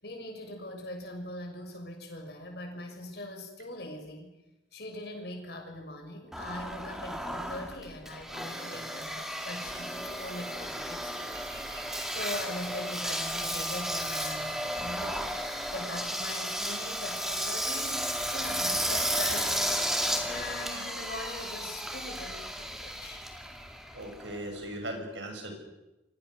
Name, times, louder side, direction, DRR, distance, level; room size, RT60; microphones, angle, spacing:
voice 1, 0.0-4.3 4.7-11.4 12.1-15.3 15.7-19.7 20.3-23.2, left 1 dB, 60° left, 3 dB, 6.5 m, -41 dB
Engine, 6.3-24.7, equal, ahead, 2.3 m, -33 dB
voice 2, 11.3-12.1 20.2-20.3 23.9-25.6, right 1 dB, 80° right, 4 dB, 6.9 m, -40 dB
28.5 x 25.0 x 6.5 m, 0.98 s
head